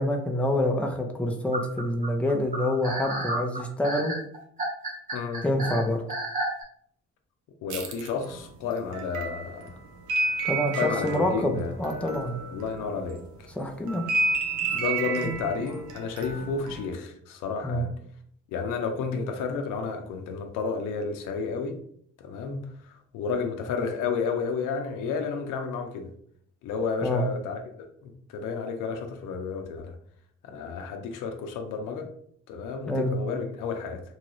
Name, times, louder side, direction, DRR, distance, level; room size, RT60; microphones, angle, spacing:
voice 1, 0.0-4.1 5.4-6.0 10.4-12.4 13.6-14.0 17.6-17.9 27.0-27.2 32.9-33.1, left 1 dB, 5° left, 2 dB, 0.5 m, -27 dB
sound 1, 1.5-6.6, right 1 dB, 25° right, 1.1 m, -31 dB
voice 2, 5.1-5.4 7.6-9.7 10.8-11.7 12.5-13.5 14.7-17.9 18.5-21.8 22.2-26.1 26.6-27.6 28.0-30.0 30.4-32.1 32.5-34.0, left 5 dB, 90° left, 5 dB, 0.6 m, -31 dB
sound 2, 7.7-13.2 13.6-16.9, right 3 dB, 80° right, 0.6 m, -31 dB
3.0 x 2.4 x 3.0 m, 0.64 s
cardioid pair, 90°, 30 cm